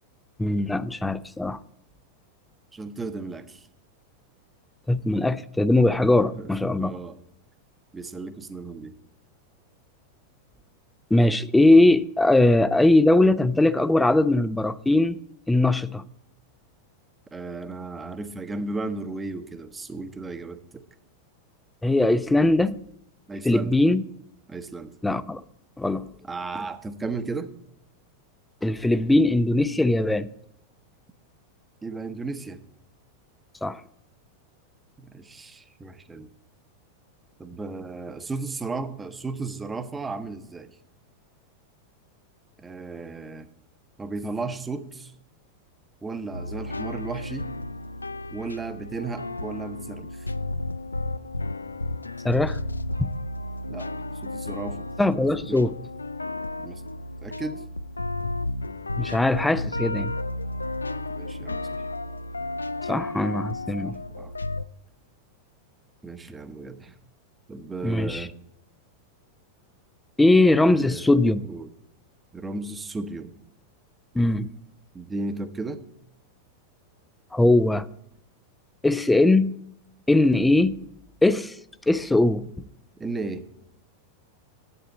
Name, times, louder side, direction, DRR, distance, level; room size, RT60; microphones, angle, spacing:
voice 1, 0.4-1.6 4.9-6.9 11.1-15.2 15.5-16.0 21.8-22.8 23.4-24.0 25.0-25.4 25.8-26.1 28.6-30.3 33.6-33.8 52.2-52.6 53.0-53.1 55.0-55.7 59.0-60.1 62.9-64.0 67.8-68.3 70.2-71.5 74.1-74.5 77.3-77.9 78.8-79.5 80.1-80.8 81.2-81.6 81.9-82.5, left 2 dB, 5° left, 0.5 m, -20 dB
voice 2, 2.7-3.7 6.3-7.2 7.9-8.9 17.3-20.8 23.3-23.7 24.5-24.9 26.2-27.5 31.8-32.6 35.0-36.3 37.4-40.7 42.6-43.5 44.0-45.1 46.0-47.5 48.3-50.2 53.7-53.9 54.2-54.9 55.4-55.7 56.6-56.8 57.2-57.6 61.1-61.8 63.8-64.3 66.0-66.9 67.5-68.3 70.6-71.7 72.3-73.3 74.9-75.9 83.0-83.4, right 3 dB, 15° right, 0.9 m, -35 dB
sound 1, 46.3-64.7, left 2 dB, 80° left, 0.3 m, -33 dB
11.0 x 8.6 x 4.0 m
figure-of-eight pair, 90°, 0 cm